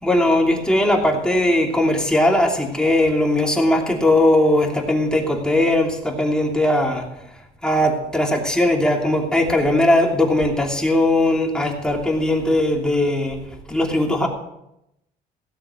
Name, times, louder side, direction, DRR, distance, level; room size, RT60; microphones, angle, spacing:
voice 1, 0.0-7.1 7.6-13.4 13.7-14.3, left 1 dB, 5° left, 0 dB, 2.9 m, -19 dB
17.0 x 7.5 x 6.5 m, 0.84 s
cardioid pair, 110°, 17 cm